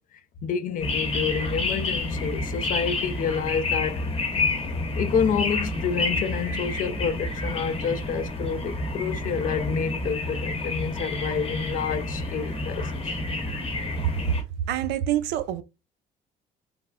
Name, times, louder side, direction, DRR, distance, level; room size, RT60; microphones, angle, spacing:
voice 1, 0.4-4.0 5.0-13.0, left 7 dB, 55° left, 0.5 m, -28 dB
sound 1, 0.8-14.4, left 2 dB, 35° left, 0.9 m, -29 dB
voice 2, 14.0-14.4 14.7-15.6, right 10 dB, 85° right, 0.4 m, -26 dB
3.3 x 2.0 x 2.4 m
cardioid pair, 110°, 17 cm